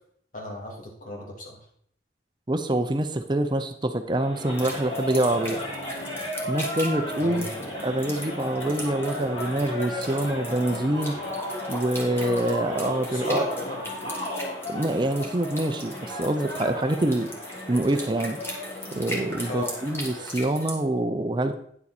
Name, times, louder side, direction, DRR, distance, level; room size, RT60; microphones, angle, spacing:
voice 1, 0.3-1.6 7.2-7.5 13.1-13.9 19.5-19.7, left 1 dB, 50° left, -1 dB, 2.7 m, -34 dB
voice 2, 2.5-5.6 6.5-7.5 7.8-11.2 11.7-13.5 14.7-17.3 17.7-18.4 18.9-21.6, right 1 dB, 25° right, 7 dB, 0.6 m, -26 dB
sound 1, 4.1-20.4, left 1 dB, 30° left, 3.4 m, -34 dB
sound 2, 4.5-20.8, equal, 15° left, 1.8 m, -39 dB
9.8 x 7.1 x 4.2 m, 0.65 s
head